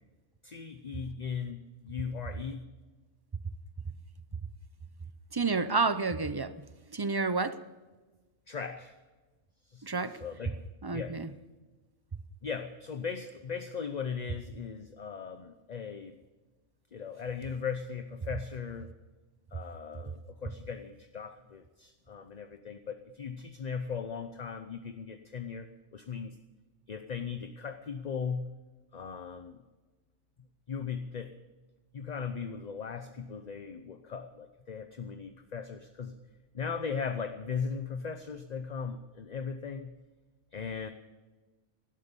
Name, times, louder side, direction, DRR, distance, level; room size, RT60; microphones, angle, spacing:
voice 1, 0.4-2.7 8.5-8.9 9.7-9.9 10.2-10.5 10.9-11.2 12.4-16.2 16.9-18.9 19.5-26.4 26.9-28.5 28.9-29.6 30.7-31.3 31.9-36.2 36.5-39.9 40.5-40.9, left 6 dB, 40° left, 8 dB, 0.8 m, -38 dB
voice 2, 5.3-6.6 6.9-7.6 9.8-10.2 10.8-11.3, right 4 dB, 30° right, 13 dB, 0.5 m, -30 dB
19.0 x 12.5 x 5.4 m, 1.2 s
omnidirectional pair, 1.2 m